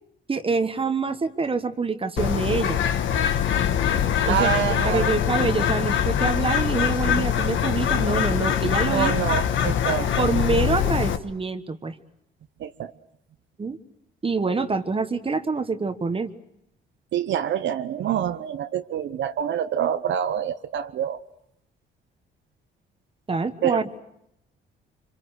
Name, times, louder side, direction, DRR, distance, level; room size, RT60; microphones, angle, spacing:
voice 1, 0.3-2.8 4.2-4.5 4.8-9.1 10.2-11.9 13.6-13.8 14.2-16.3 23.3-23.9, right 4 dB, 25° right, 9 dB, 1.3 m, -26 dB
Bird, 2.2-11.2, left 9 dB, 75° left, 1.4 m, -23 dB
voice 2, 4.3-5.1 8.9-10.1 12.6-12.9 17.1-21.2 23.6-23.8, right 10 dB, 70° right, 9 dB, 0.9 m, -26 dB
26.0 x 25.5 x 6.4 m, 0.77 s
cardioid pair, 90°, 20 cm